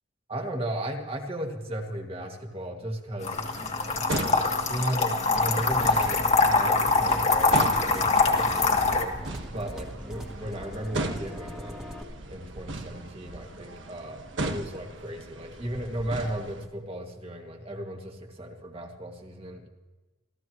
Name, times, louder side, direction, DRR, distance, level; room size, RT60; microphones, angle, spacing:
voice 1, 0.3-3.4 4.1-6.2 6.5-7.6 7.9-9.2 9.5-11.8 12.3-19.7, right 1 dB, 30° right, 3 dB, 2.0 m, -35 dB
sound 1, 3.2-9.0, left 3 dB, 35° left, 1.7 m, -23 dB
sound 2, 3.2-16.7, right 2 dB, 80° right, 1.4 m, -38 dB
sound 3, 5.4-12.0, equal, 5° right, 1.6 m, -40 dB
28.0 x 14.5 x 3.1 m, 1.2 s
head